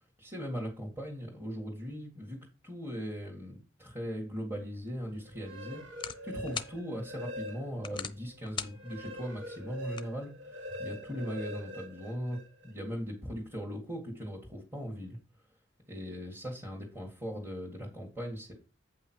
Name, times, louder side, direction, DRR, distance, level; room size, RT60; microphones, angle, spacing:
voice 1, 0.2-2.4 2.6-5.8 6.2-15.2 15.9-18.5, equal, 10° right, -3 dB, 2.0 m, -39 dB
sound 1, 4.8-10.8, left 6 dB, 25° left, 0.7 m, -45 dB
sound 2, 5.3-8.0 8.4-12.7, equal, 65° right, 2.2 m, -43 dB
8.7 x 5.6 x 4.6 m, 0.32 s
head